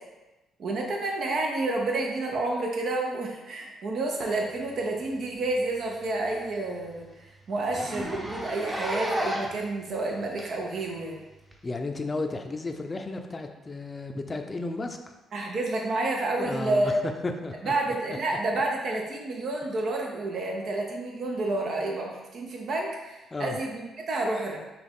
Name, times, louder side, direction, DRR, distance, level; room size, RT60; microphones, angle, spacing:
voice 1, 0.6-11.2 15.3-16.9 17.6-24.6, right 2 dB, 60° right, 0 dB, 0.7 m, -29 dB
Zipper (clothing), 5.0-5.2 5.6-5.7 6.1-6.2 6.5-6.6 6.9-7.0 7.7-9.7 10.4-10.5 11.5-11.6, equal, 10° right, 0.8 m, -32 dB
voice 2, 11.6-15.1 16.4-17.7 23.3-23.6, left 2 dB, 25° left, 5 dB, 0.5 m, -33 dB
6.0 x 2.4 x 3.6 m, 1.1 s
cardioid pair, 90°, 0 cm